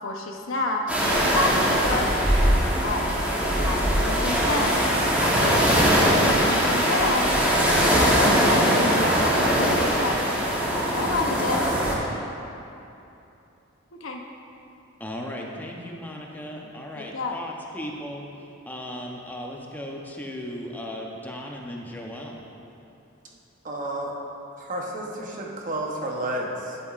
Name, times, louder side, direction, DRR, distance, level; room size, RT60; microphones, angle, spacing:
voice 1, 0.0-0.8 1.2-2.1 2.4-3.1 3.5-4.8 5.2-10.4 10.9-11.7 13.9-14.2 17.0-17.4, left 2 dB, 75° left, 2 dB, 0.8 m, -29 dB
sound 1, 0.9-11.9, equal, 10° right, 1.1 m, -21 dB
voice 2, 15.0-18.2 18.7-22.4, equal, 10° left, -1 dB, 0.7 m, -36 dB
voice 3, 23.6-24.2 24.6-26.8, right 1 dB, 40° right, -1 dB, 0.9 m, -31 dB
10.5 x 8.3 x 2.5 m, 2.8 s
head